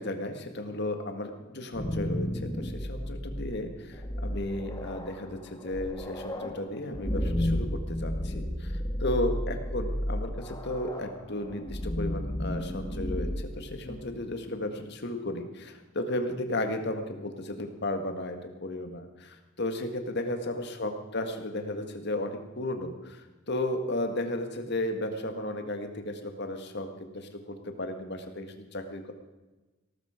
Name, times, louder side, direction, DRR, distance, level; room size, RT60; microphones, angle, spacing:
voice 1, 0.0-29.1, left 1 dB, 55° left, 6 dB, 1.8 m, -34 dB
sound 1, 1.5-14.3, equal, 20° left, 1.5 m, -33 dB
17.5 x 14.0 x 5.1 m, 1.1 s
head